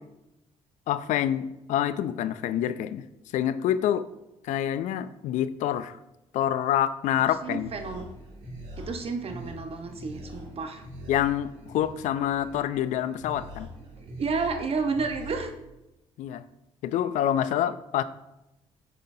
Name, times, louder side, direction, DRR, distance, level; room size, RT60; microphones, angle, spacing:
voice 1, 0.9-3.0 3.3-4.1 4.4-6.0 6.3-7.7 11.1-13.7 16.2-16.4 16.8-18.0, left 11 dB, 70° left, 15 dB, 0.4 m, -27 dB
sound 1, 7.1-15.4, equal, 75° right, 2.2 m, -44 dB
voice 2, 7.4-8.0 8.8-10.8 14.1-15.5, right 4 dB, 50° right, 5 dB, 1.0 m, -31 dB
8.3 x 5.5 x 2.7 m, 0.92 s
supercardioid pair, 65°, 13 cm